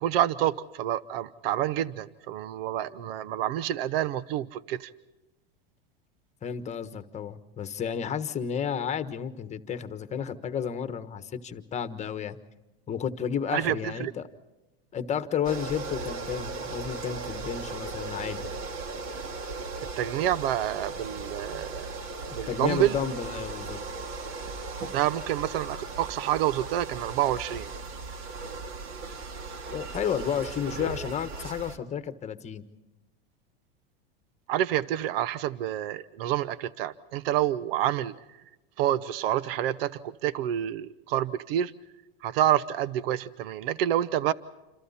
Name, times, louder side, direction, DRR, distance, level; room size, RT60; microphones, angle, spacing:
voice 1, 0.0-4.9 13.5-14.1 20.0-21.9 22.4-23.0 24.9-27.7 34.5-38.1 38.8-41.7 42.2-44.3, right 12 dB, 70° right, 17 dB, 1.0 m, -28 dB
voice 2, 6.4-12.4 12.9-14.3 14.9-18.5 22.3-23.8 29.7-32.6, left 8 dB, 20° left, 11 dB, 1.3 m, -32 dB
sound 1, 15.4-31.8, right 3 dB, 45° right, 2.2 m, -37 dB
28.0 x 27.5 x 4.2 m, 1.0 s
supercardioid pair, 135°, 30 cm